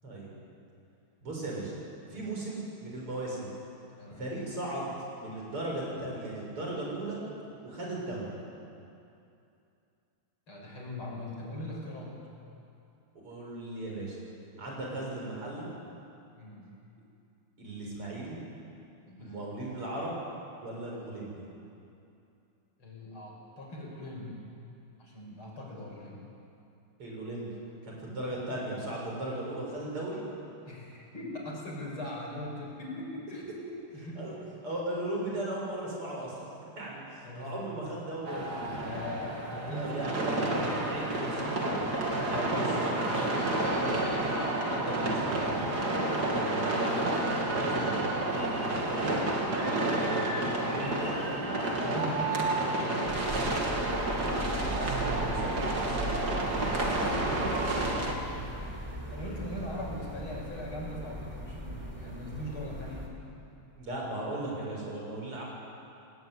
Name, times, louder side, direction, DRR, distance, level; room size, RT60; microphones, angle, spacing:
voice 1, 1.2-1.7 2.1-3.5 4.2-7.2 7.6-8.3 13.2-14.2 14.6-15.7 17.6-18.4 19.2-20.2 20.6-21.4 27.0-27.5 27.8-30.2 33.9-34.3 34.6-36.4 36.7-38.7 39.6-44.2 44.7-45.6 46.3-48.4 48.9-51.3 54.6-57.1 63.7-65.4, right 1 dB, 85° right, -3 dB, 8.2 m, -37 dB
voice 2, 4.0-4.3 10.5-12.2 16.4-16.7 19.1-19.4 20.9-21.0 22.8-24.4 25.0-26.2 30.6-33.4 33.9-34.3 37.2-37.5 38.8-40.8 42.1-42.5 43.1-43.2 46.1-46.5 49.6-50.1 50.7-51.4 51.7-53.1 57.2-63.1, left 1 dB, 70° left, -2 dB, 6.8 m, -41 dB
sound 1, 38.2-58.1, right 2 dB, 45° right, 3.1 m, -30 dB
sound 2, 53.0-63.1, right 1 dB, 15° right, 3.7 m, -39 dB
27.5 x 19.0 x 9.7 m, 2.7 s
omnidirectional pair, 2.4 m